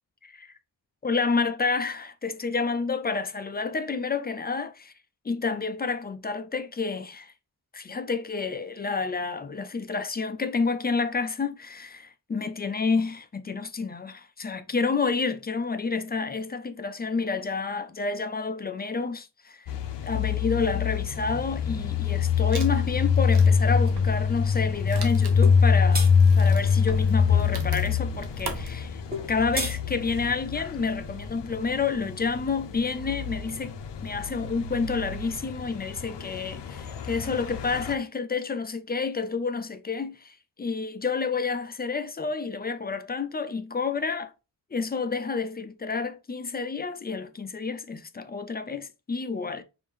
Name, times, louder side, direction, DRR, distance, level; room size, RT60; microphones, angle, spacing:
voice 1, 0.2-0.5 1.0-4.9 5.2-7.3 7.7-19.7 20.0-26.1 26.4-29.0 29.3-33.8 34.0-44.3 44.7-49.6, left 4 dB, 25° left, 0.3 m, -29 dB
sound 1, 19.7-37.9, left 6 dB, 90° left, 0.7 m, -25 dB
Wood, 22.5-28.7, right 3 dB, 65° right, 1.1 m, -40 dB
sound 2, 25.4-25.6 25.9-26.1 29.1-29.8, equal, 20° right, 1.0 m, -30 dB
5.2 x 2.7 x 3.4 m
wide cardioid pair, 180°, 42 cm